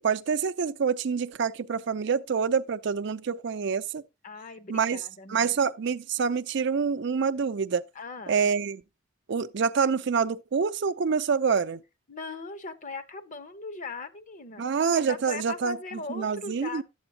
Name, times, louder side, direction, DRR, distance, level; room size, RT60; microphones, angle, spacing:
voice 1, 0.0-4.0 4.7-5.0 5.3-7.8 8.3-8.8 9.3-11.8 14.6-15.8 16.1-16.8, right 6 dB, 60° right, 0.5 m, -26 dB
voice 2, 4.2-5.5 7.9-8.5 12.1-16.8, left 3 dB, 40° left, 0.8 m, -40 dB
11.5 x 7.9 x 2.7 m
head